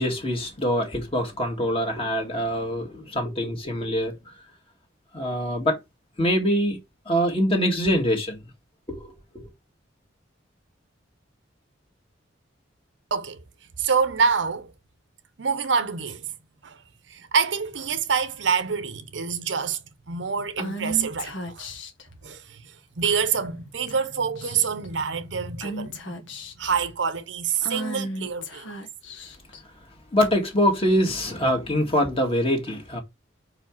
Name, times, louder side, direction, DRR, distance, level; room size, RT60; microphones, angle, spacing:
voice 1, 0.0-4.3 5.1-5.8 6.2-6.8 7.1-8.4 8.9-9.5 30.1-33.0, equal, 30° left, 1.8 m, -24 dB
voice 2, 13.8-14.7 15.4-16.3 16.6-16.8 17.1-19.8 20.1-21.7 22.2-22.6 23.0-26.3 26.6-28.7, right 6 dB, 65° right, 0.8 m, -26 dB
Female speech woman speaking / Whispering, 20.6-22.0 23.0-23.5 23.9-24.0 24.3-24.9 25.6-26.7 27.6-29.6, equal, 80° left, 1.6 m, -35 dB
4.9 x 4.9 x 5.9 m
head